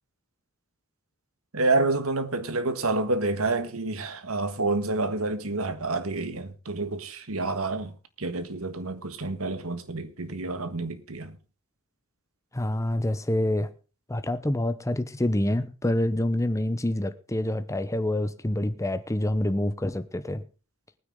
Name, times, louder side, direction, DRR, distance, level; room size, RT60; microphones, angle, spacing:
voice 1, 1.5-11.4, right 2 dB, 75° right, 1.7 m, -28 dB
voice 2, 12.5-13.7 14.1-20.4, left 1 dB, 15° left, 0.8 m, -27 dB
20.0 x 9.7 x 3.8 m
head